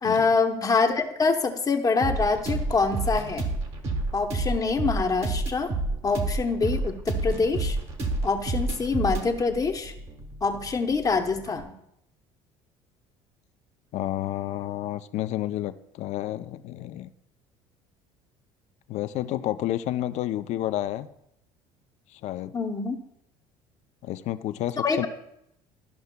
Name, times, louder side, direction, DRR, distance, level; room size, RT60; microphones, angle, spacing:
voice 1, 0.0-3.4 4.1-5.7 6.0-7.8 8.2-9.9 10.4-11.7 22.5-22.9 24.8-25.1, left 4 dB, 25° left, 5 dB, 0.8 m, -25 dB
sound 1, 2.0-11.6, right 2 dB, 50° right, 1.4 m, -30 dB
voice 2, 13.9-17.1 18.9-21.1 22.2-22.5 24.0-25.1, left 13 dB, 60° left, 12 dB, 0.4 m, -30 dB
13.5 x 5.5 x 2.2 m, 0.78 s
supercardioid pair, 95°, 13 cm